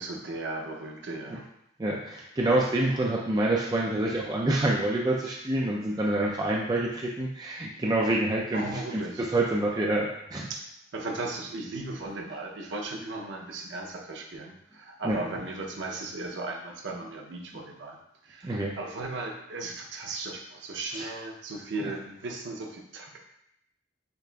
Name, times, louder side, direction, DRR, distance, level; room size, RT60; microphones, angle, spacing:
voice 1, 0.0-1.4 8.5-9.2 10.5-10.6 10.9-18.0 18.2-23.2, right 2 dB, 85° right, 1 dB, 0.6 m, -36 dB
voice 2, 1.8-10.5 15.0-15.2 18.4-18.8 20.9-21.1, right 1 dB, 20° right, -2 dB, 0.3 m, -27 dB
6.6 x 2.4 x 2.2 m, 0.79 s
head